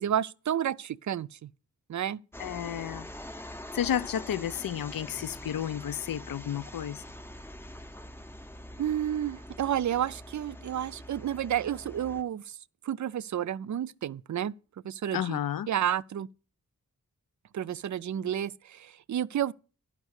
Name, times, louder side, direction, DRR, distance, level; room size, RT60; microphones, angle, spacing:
voice 1, 0.0-1.5 1.9-2.2 8.8-12.6 12.8-14.5 14.8-15.4 15.7-16.3 17.5-19.5, right 10 dB, 60° right, 0.4 m, -31 dB
sound 1, 2.3-12.2, left 1 dB, 5° left, 0.6 m, -44 dB
voice 2, 2.4-3.1 3.7-7.0 15.1-15.7, left 10 dB, 85° left, 0.5 m, -32 dB
12.0 x 5.9 x 6.4 m
wide cardioid pair, 100°, 34 cm